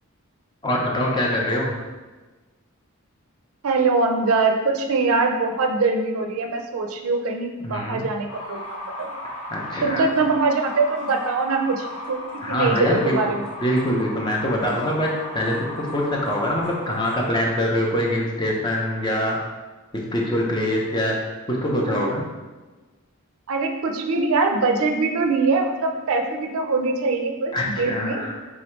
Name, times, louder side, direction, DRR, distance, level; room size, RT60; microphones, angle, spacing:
voice 1, 0.6-1.8 7.6-8.0 9.5-10.0 12.4-13.2 13.6-19.4 19.9-21.1 21.5-22.2 27.5-28.3, left 1 dB, 20° left, -2 dB, 0.5 m, -24 dB
voice 2, 3.6-9.1 9.8-12.2 12.5-13.5 21.8-22.1 23.5-28.3, right 3 dB, 75° right, 4 dB, 0.5 m, -23 dB
sound 1, 8.3-17.2, left 1 dB, 85° left, 0.9 m, -36 dB
3.6 x 2.7 x 4.3 m, 1.2 s
head